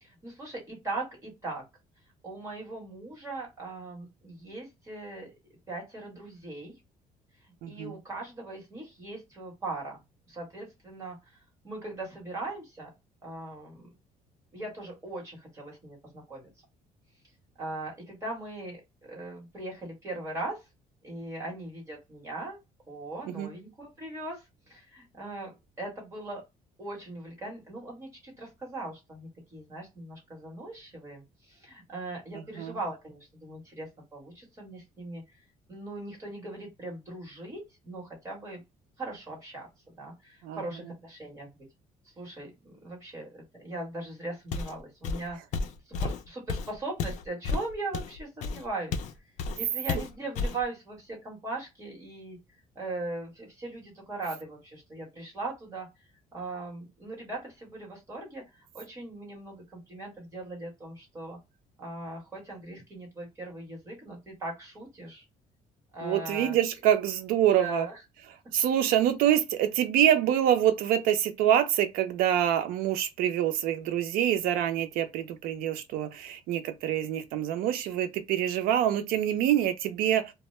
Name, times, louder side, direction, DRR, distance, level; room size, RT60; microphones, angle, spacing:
voice 1, 0.0-1.6 2.2-5.3 5.7-6.7 7.7-10.0 10.3-11.4 11.6-12.9 13.2-13.9 14.5-16.5 17.6-20.6 21.0-22.6 22.9-26.4 26.8-35.2 35.7-38.6 39.0-39.7 40.0-41.7 42.2-45.4 45.9-49.0 49.6-52.4 52.7-55.9 56.3-58.4 58.7-61.4 61.8-65.2 65.9-66.6 67.6-68.0, right 2 dB, 20° right, 1.2 m, -39 dB
voice 2, 7.6-7.9 23.4-23.5 32.6-32.7 40.4-40.6 66.0-67.9 68.5-80.3, right 11 dB, 90° right, 0.5 m, -26 dB
Walk footsteps, 44.5-44.8 45.0-49.1 49.4-49.6 49.9-50.6, left 4 dB, 55° left, 0.4 m, -32 dB
2.1 x 2.0 x 3.0 m
cardioid pair, 170°, 15 cm